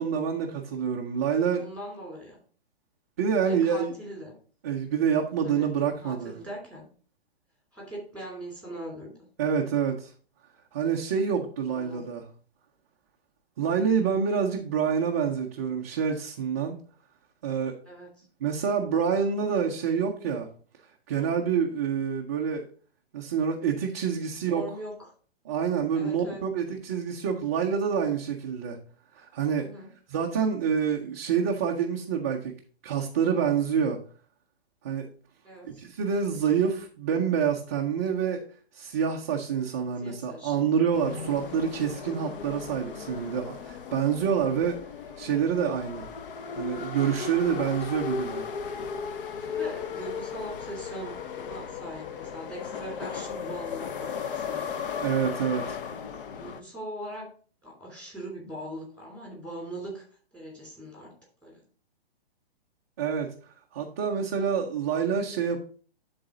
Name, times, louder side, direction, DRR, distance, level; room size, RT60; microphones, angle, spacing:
voice 1, 0.0-1.6 3.2-3.9 4.6-6.3 9.4-10.1 10.7-12.3 13.6-16.8 17.4-17.7 18.4-20.5 21.1-22.6 23.1-24.6 25.5-28.8 29.2-29.7 30.1-32.5 32.8-34.0 34.8-35.1 35.7-38.4 38.7-44.8 45.2-46.1 46.5-48.4 55.0-55.8 63.0-63.3 63.7-65.6, right 7 dB, 15° right, -1 dB, 0.4 m, -27 dB
voice 2, 1.5-2.4 3.4-4.3 5.4-6.9 7.7-9.1 11.7-12.0 17.8-18.3 24.5-24.9 25.9-26.4 29.6-29.9 35.4-35.8 40.0-40.7 41.1-41.4 49.3-54.8 56.4-57.3 57.6-60.0 60.3-61.1 61.4-61.6, right 1 dB, 5° left, -3 dB, 2.9 m, -41 dB
sound 1, 40.9-56.6, left 6 dB, 55° left, 0.8 m, -36 dB
11.5 x 4.0 x 3.8 m, 0.42 s
hypercardioid pair, 155°, 31 cm